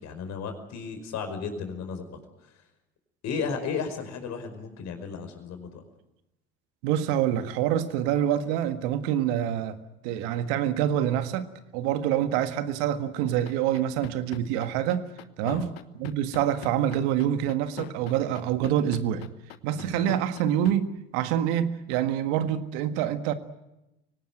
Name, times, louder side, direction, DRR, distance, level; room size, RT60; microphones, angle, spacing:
voice 1, 0.0-2.2 3.2-5.8 15.4-15.7 19.7-20.0, left 5 dB, 60° left, 6 dB, 5.3 m, -34 dB
voice 2, 6.8-9.8 10.0-15.1 15.4-15.7 16.0-19.3 19.6-23.3, right 10 dB, 75° right, 10 dB, 1.7 m, -26 dB
sound 1, 13.3-20.7, left 13 dB, 85° left, 1.1 m, -41 dB
24.0 x 18.5 x 9.1 m, 0.92 s
hypercardioid pair, 60°, 30 cm